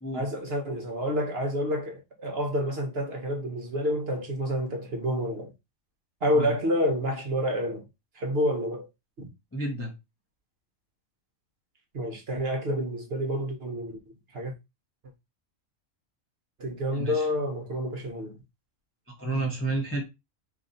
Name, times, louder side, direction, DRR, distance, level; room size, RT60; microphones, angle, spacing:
voice 1, 0.1-5.5 6.2-7.9 8.2-8.9 9.2-9.3 11.9-14.0 14.3-14.5 16.6-18.4, equal, 50° right, 1.0 m, -29 dB
voice 2, 9.5-9.9 16.9-17.3 19.1-20.0, right 2 dB, 15° left, 0.6 m, -31 dB
3.1 x 2.7 x 3.8 m
omnidirectional pair, 1.4 m